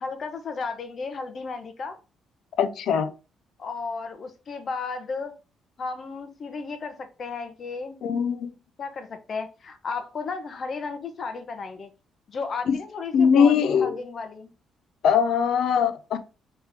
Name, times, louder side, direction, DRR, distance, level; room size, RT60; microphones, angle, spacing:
voice 1, 0.0-2.0 3.6-5.4 5.8-8.0 8.8-11.9 12.3-14.5, left 4 dB, 50° left, 0.9 m, -34 dB
voice 2, 2.6-3.1 8.0-8.5 12.7-12.8 13.1-14.0 15.0-16.2, left 7 dB, 75° left, 0.6 m, -21 dB
4.4 x 3.2 x 3.4 m
cardioid pair, 90°, 0 cm